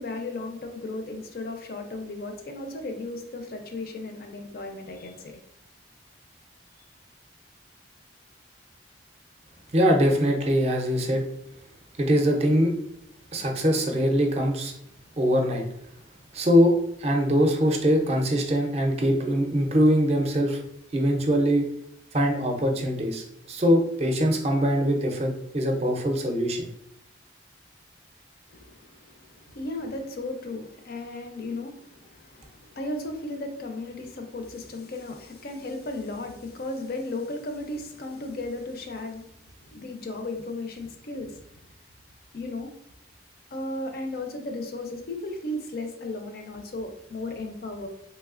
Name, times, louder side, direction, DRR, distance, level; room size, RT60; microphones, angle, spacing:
voice 1, 0.0-5.4 28.5-39.3 39.7-41.5 42.3-42.7 43.5-47.9, left 2 dB, 50° left, 4 dB, 0.4 m, -35 dB
voice 2, 9.7-11.2 12.0-12.7 13.3-14.7 15.2-15.6 16.3-16.7 17.0-20.6 20.9-21.7 22.1-26.7, equal, 35° right, 2 dB, 0.5 m, -22 dB
3.1 x 3.1 x 2.4 m, 0.76 s
head